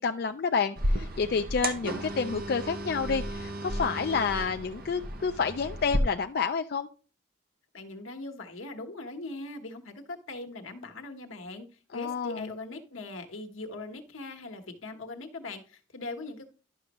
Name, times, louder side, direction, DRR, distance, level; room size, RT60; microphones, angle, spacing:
voice 1, 0.0-6.9 11.9-12.5, left 5 dB, 50° left, 7 dB, 0.3 m, -29 dB
sound 1, 0.8-6.0, right 1 dB, 45° right, 0.9 m, -33 dB
voice 2, 7.7-16.4, left 2 dB, 85° left, 4 dB, 1.2 m, -40 dB
11.5 x 6.1 x 3.0 m, 0.37 s
head